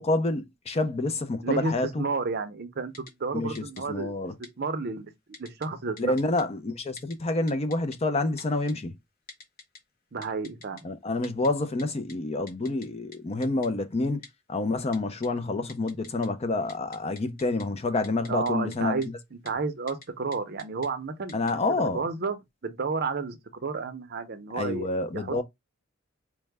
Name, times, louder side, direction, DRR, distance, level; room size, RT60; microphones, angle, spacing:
voice 1, 0.0-2.0 3.3-4.3 6.0-9.0 10.8-14.2 14.5-19.0 21.3-22.0 24.5-25.4, left 2 dB, 30° left, 0.5 m, -28 dB
voice 2, 1.4-1.7 2.0-4.1 4.6-5.1 5.4-6.1 10.1-10.8 18.3-21.5 21.9-22.4 22.6-25.4, right 4 dB, 55° right, 0.6 m, -31 dB
Typing, 2.9-3.1 3.5-3.8 4.4-4.5 5.3-5.7 6.0-6.4 7.0-7.1 7.5-8.0 8.4-8.7 9.3-9.8 10.2-10.8 11.2-11.5 11.8-11.9 12.1-12.2 12.5-12.9 13.1-13.2 13.4-13.7 14.2-14.3 14.9-15.3 15.7-16.3 16.6-17.6 18.0-18.8 19.0-19.1 19.5-19.6 19.9-20.1 20.3-20.9 21.3-21.5, left 3 dB, 45° left, 1.0 m, -46 dB
4.5 x 2.1 x 3.3 m
head